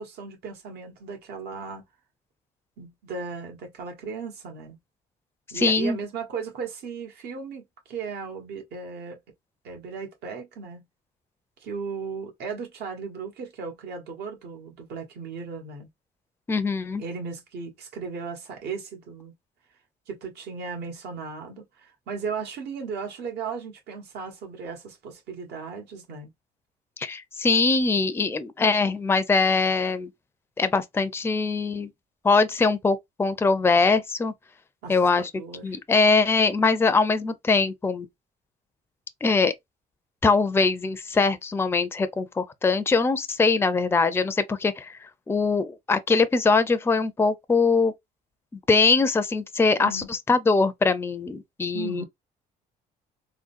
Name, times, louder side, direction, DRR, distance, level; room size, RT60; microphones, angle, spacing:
voice 1, 0.0-1.8 2.8-4.8 5.5-9.2 9.6-10.8 11.6-15.9 16.9-19.3 20.1-26.3 34.8-35.8 49.8-50.1 51.7-52.0, right 5 dB, 75° right, 1.3 m, -36 dB
voice 2, 5.5-6.0 16.5-17.0 27.0-30.1 30.6-31.9 32.2-34.3 34.9-35.3 35.6-38.1 39.2-39.5 40.2-45.0 45.3-47.9 48.7-52.0, left 4 dB, 15° left, 0.5 m, -22 dB
3.7 x 2.2 x 2.5 m
cardioid pair, 110°, 17 cm